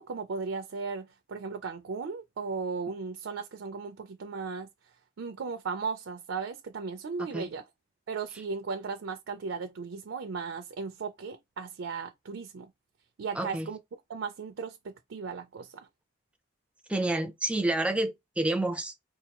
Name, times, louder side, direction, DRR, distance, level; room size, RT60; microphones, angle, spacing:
voice 1, 0.0-4.7 5.2-7.6 8.1-12.7 13.2-13.8 14.1-15.9, right 5 dB, 80° right, 0.4 m, -36 dB
voice 2, 7.2-7.5 13.3-13.7 16.9-19.0, right 2 dB, 5° right, 0.4 m, -29 dB
4.7 x 2.3 x 2.9 m
head